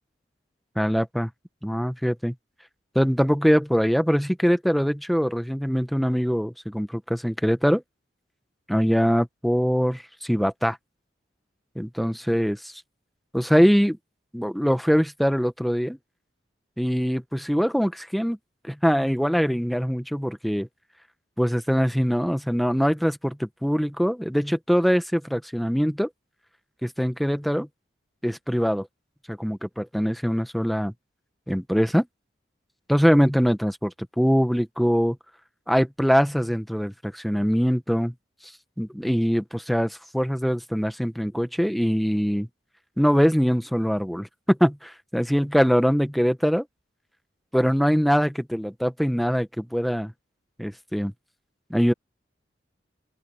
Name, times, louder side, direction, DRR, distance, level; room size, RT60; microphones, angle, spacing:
voice 1, 0.8-1.3 1.6-2.3 2.9-7.8 8.7-10.8 11.7-12.8 13.3-14.0 14.3-16.0 16.8-18.4 18.7-20.7 21.4-26.1 26.8-27.7 28.2-28.9 29.3-30.9 31.5-32.1 32.9-35.2 35.7-38.1 38.8-42.5 43.0-46.6 47.5-50.1 50.6-51.1 51.7-51.9, equal, ahead, 1.1 m, -23 dB
open air
head